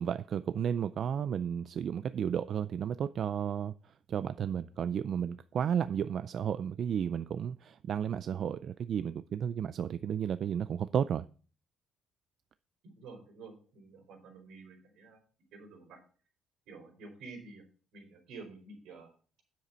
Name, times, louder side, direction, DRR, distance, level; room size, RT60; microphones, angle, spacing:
voice 1, 0.0-3.7 4.1-11.3, right 8 dB, 50° right, 0.3 m, -33 dB
voice 2, 13.0-15.2 15.5-16.0 16.7-17.6 17.9-19.1, right 4 dB, 80° right, 4.7 m, -50 dB
9.6 x 7.7 x 4.2 m
cardioid pair, 160°, 0 cm